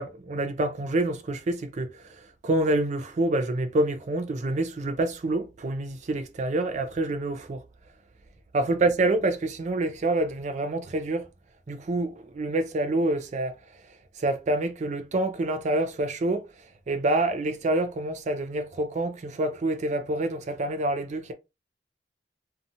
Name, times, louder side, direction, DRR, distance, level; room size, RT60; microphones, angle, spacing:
voice 1, 0.0-7.6 8.5-11.3 11.7-13.5 14.2-16.5 16.9-21.3, right 2 dB, 40° right, 0.4 m, -27 dB
2.6 x 2.3 x 2.6 m
head